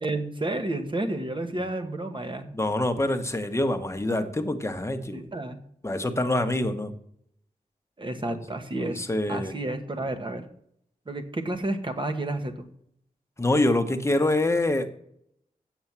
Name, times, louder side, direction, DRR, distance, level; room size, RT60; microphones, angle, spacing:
voice 1, 0.0-2.5 5.1-5.6 8.0-10.4 11.1-12.7, right 2 dB, 35° right, 7 dB, 1.3 m, -31 dB
voice 2, 2.5-5.3 5.8-6.9 8.3-8.4 8.8-9.5 13.4-14.9, left 1 dB, 20° left, 7 dB, 1.0 m, -25 dB
7.9 x 7.9 x 7.3 m, 0.70 s
wide cardioid pair, 125°, 15 cm